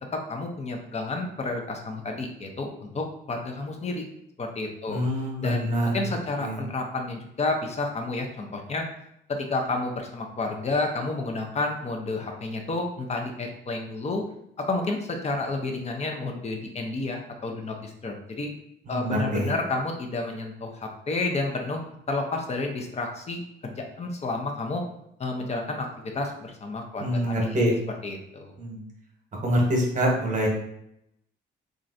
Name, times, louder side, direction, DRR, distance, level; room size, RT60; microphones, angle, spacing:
voice 1, 0.1-4.0 4.4-5.0 5.4-5.7 5.9-8.9 9.3-14.2 14.7-18.5 18.9-24.8 25.2-27.6 28.0-28.5, left 3 dB, 35° left, 2 dB, 0.6 m, -30 dB
voice 2, 4.9-5.9 6.4-6.6 18.9-19.5 27.0-27.7 28.6-28.8 29.4-30.5, equal, 40° right, -1 dB, 1.0 m, -25 dB
3.1 x 2.5 x 2.5 m, 0.77 s
cardioid pair, 90°, 20 cm